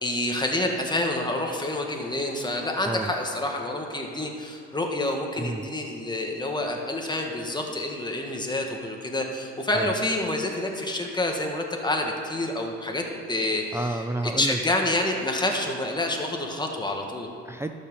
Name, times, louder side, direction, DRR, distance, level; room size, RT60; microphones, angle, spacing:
voice 1, 0.0-13.8 14.4-17.3, left 1 dB, 15° left, 1 dB, 1.6 m, -28 dB
voice 2, 5.4-5.7 9.7-9.9 13.7-14.6 17.4-17.7, right 2 dB, 10° right, 6 dB, 0.5 m, -30 dB
11.5 x 5.7 x 7.1 m, 2.6 s
cardioid pair, 90°, 30 cm